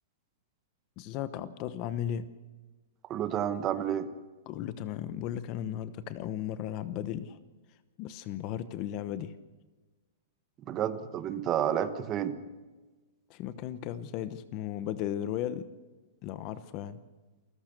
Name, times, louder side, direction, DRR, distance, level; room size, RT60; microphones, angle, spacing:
voice 1, 1.0-2.3 4.5-7.4 8.0-9.3 13.3-15.7 16.2-17.0, left 11 dB, 30° left, 14 dB, 0.9 m, -35 dB
voice 2, 3.1-4.1 10.7-12.3, right 9 dB, 20° right, 12 dB, 1.2 m, -30 dB
28.0 x 14.5 x 6.7 m, 1.2 s
supercardioid pair, 170°, 0 cm